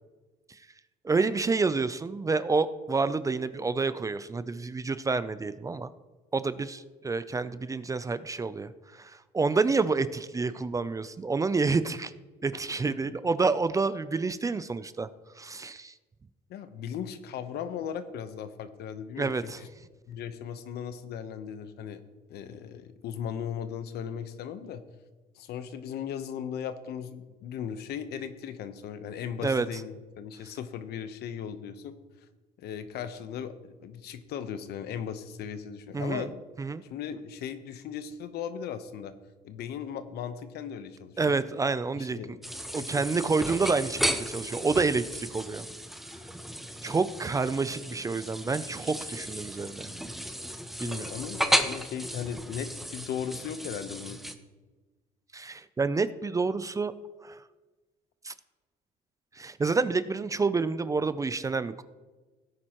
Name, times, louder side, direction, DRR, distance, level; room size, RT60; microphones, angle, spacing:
voice 1, 1.0-5.9 6.3-12.1 12.4-15.1 15.4-15.9 19.2-19.6 29.4-29.7 35.9-36.3 36.6-36.8 41.2-42.2 42.7-45.7 46.8-49.9 50.8-51.1 55.3-56.9 57.2-57.4 58.2-58.3 59.3-61.8, right 4 dB, 20° right, 14 dB, 0.4 m, -28 dB
voice 2, 16.5-19.7 20.1-22.0 22.3-24.8 25.3-31.9 32.6-36.4 36.9-39.1 39.4-41.4 41.9-42.4 42.8-43.0 50.8-54.2, left 8 dB, 75° left, 10 dB, 0.9 m, -37 dB
sound 1, 42.4-54.3, equal, ahead, 0.8 m, -34 dB
16.5 x 9.6 x 3.0 m, 1.2 s
cardioid pair, 110°, 17 cm